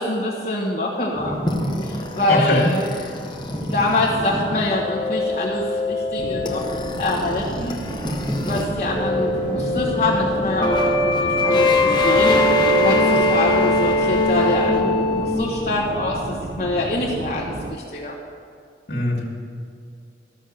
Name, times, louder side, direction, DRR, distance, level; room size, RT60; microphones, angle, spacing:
voice 1, 0.0-1.4 1.8-2.9 3.7-6.6 7.0-7.8 8.4-12.5 12.8-18.1, left 2 dB, 40° left, -6 dB, 1.3 m, -25 dB
sound 1, 1.1-14.0, equal, 10° right, 1.5 m, -34 dB
sound 2, 1.5-8.6 8.9-15.3, left 2 dB, 25° left, 1.0 m, -22 dB
voice 2, 2.3-2.7 18.9-19.3, left 1 dB, 70° left, -3 dB, 1.9 m, -21 dB
sound 3, 6.2-17.8, right 2 dB, 35° right, 0.4 m, -32 dB
13.0 x 6.3 x 7.1 m, 2.3 s
head